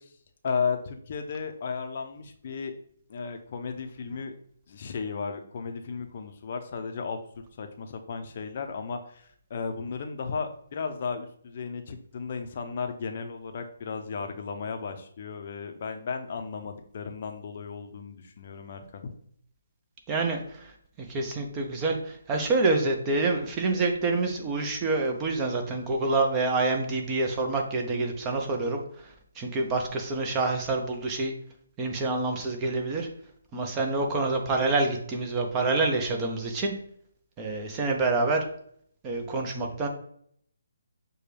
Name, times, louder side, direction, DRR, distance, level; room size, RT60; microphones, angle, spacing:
voice 1, 0.4-2.7 3.1-4.3 4.7-7.2 7.6-19.1 39.6-39.8, left 5 dB, 45° left, 5 dB, 0.5 m, -34 dB
voice 2, 20.1-20.4 21.1-22.0 22.3-28.8 29.4-31.3 31.8-33.1 33.5-36.7 37.4-38.4 39.0-39.9, right 3 dB, 20° right, 3 dB, 0.6 m, -27 dB
6.5 x 2.2 x 3.2 m, 0.65 s
hypercardioid pair, 155°, 0 cm